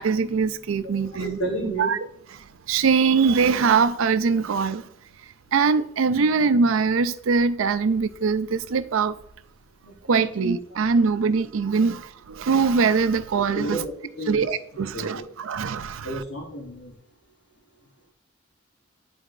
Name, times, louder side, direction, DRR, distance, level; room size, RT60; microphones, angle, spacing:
voice 1, 0.0-2.0 2.7-4.8 5.5-9.2 10.1-13.8 14.3-16.2, right 5 dB, 90° right, 0.4 m, -22 dB
voice 2, 0.8-1.9 9.8-10.3 13.4-13.9 14.2-14.5 14.9-15.3 16.0-16.9, right 1 dB, 80° left, 1.1 m, -32 dB
9.9 x 4.1 x 2.5 m
head